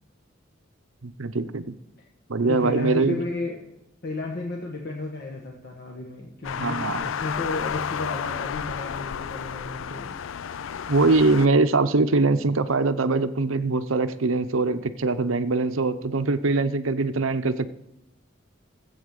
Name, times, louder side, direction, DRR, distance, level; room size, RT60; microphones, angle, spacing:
voice 1, 1.0-1.7 2.3-3.2 6.6-7.1 10.9-17.7, right 3 dB, 85° right, 11 dB, 0.8 m, -22 dB
voice 2, 2.4-3.7 4.0-10.2, left 2 dB, 50° left, -1 dB, 1.4 m, -33 dB
sound 1, 6.4-11.5, left 7 dB, 75° left, 0.4 m, -32 dB
15.0 x 8.0 x 6.6 m, 0.86 s
head